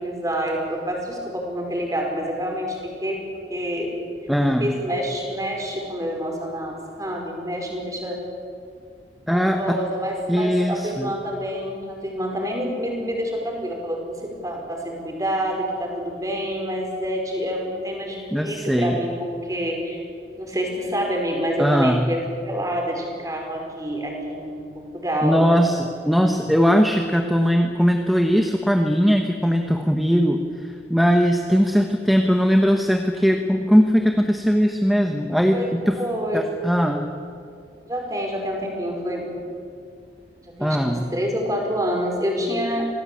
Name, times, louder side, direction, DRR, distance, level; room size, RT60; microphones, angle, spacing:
voice 1, 0.0-3.2 3.5-3.9 4.6-8.2 9.3-20.0 20.4-25.5 35.5-36.5 37.9-39.3 40.4-42.8, equal, 20° right, 1 dB, 5.2 m, -27 dB
voice 2, 4.3-4.8 9.3-9.8 10.3-11.1 18.3-19.0 21.6-22.1 25.2-25.8 26.1-36.0 36.3-37.1 40.6-41.1, equal, ahead, 3 dB, 1.2 m, -20 dB
27.0 x 19.0 x 8.7 m, 2.4 s
head